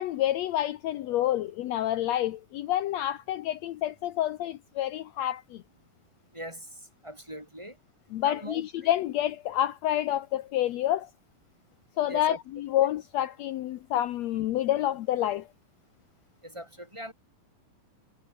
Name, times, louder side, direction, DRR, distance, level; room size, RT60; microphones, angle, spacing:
voice 1, 0.0-5.6 8.1-11.1 12.0-15.5, left 12 dB, 80° left, 1.5 m, -28 dB
voice 2, 6.3-6.7 7.0-7.8 8.2-8.9 12.1-12.4 16.4-17.1, equal, 5° right, 5.6 m, -41 dB
omnidirectional pair, 4.1 m